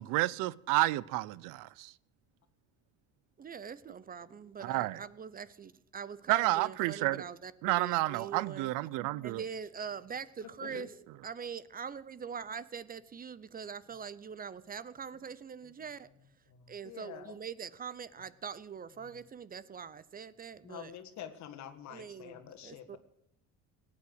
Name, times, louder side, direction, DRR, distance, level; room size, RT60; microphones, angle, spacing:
voice 1, 0.0-1.9 4.6-5.0 6.3-7.2 7.6-9.4, right 18 dB, 85° right, 0.6 m, -30 dB
voice 2, 3.4-8.7 9.2-16.1 16.7-20.9 21.9-23.0, right 6 dB, 30° right, 0.6 m, -43 dB
voice 3, 16.8-17.3 20.6-23.0, left 9 dB, 60° left, 1.7 m, -46 dB
18.0 x 8.6 x 7.9 m
cardioid pair, 110°, 31 cm